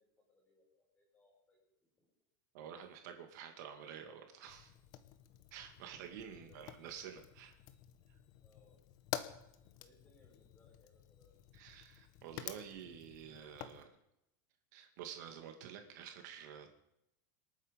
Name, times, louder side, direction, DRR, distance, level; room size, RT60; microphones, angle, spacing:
voice 1, 0.0-2.1 6.3-6.6 8.4-8.8 9.6-11.3, left 3 dB, 15° left, 0 dB, 5.7 m, -70 dB
voice 2, 2.5-4.7 5.5-7.6 11.5-13.9 14.7-16.7, right 8 dB, 60° right, 5 dB, 2.2 m, -50 dB
Fire, 4.5-13.8, left 12 dB, 40° left, 1.1 m, -50 dB
27.0 x 9.0 x 5.3 m, 0.83 s
supercardioid pair, 170°, 11 cm